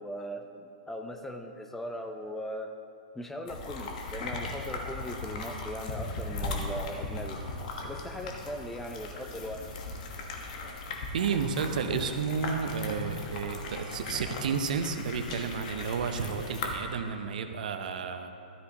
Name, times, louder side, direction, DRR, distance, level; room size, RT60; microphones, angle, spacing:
voice 1, 0.0-2.7 3.1-9.7, equal, 5° left, 5 dB, 0.6 m, -39 dB
sound 1, 3.5-16.8, left 2 dB, 60° left, 1.3 m, -38 dB
voice 2, 11.1-18.4, right 6 dB, 70° right, 8 dB, 0.7 m, -32 dB
13.0 x 8.1 x 2.9 m, 2.7 s
hypercardioid pair, 115°, 5 cm